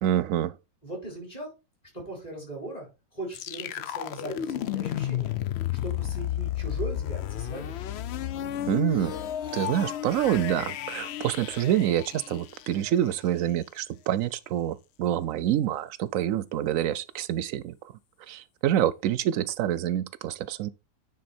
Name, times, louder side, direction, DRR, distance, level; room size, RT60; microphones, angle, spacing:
voice 1, 0.0-0.6 8.7-9.2 9.5-17.7 18.3-20.7, right 11 dB, 75° right, 0.9 m, -27 dB
voice 2, 0.8-1.5 1.9-5.4 5.8-7.8, right 1 dB, 25° left, 4.3 m, -39 dB
sound 1, 3.3-13.2, left 11 dB, 65° left, 0.7 m, -32 dB
9.5 x 3.9 x 4.3 m
omnidirectional pair, 1.5 m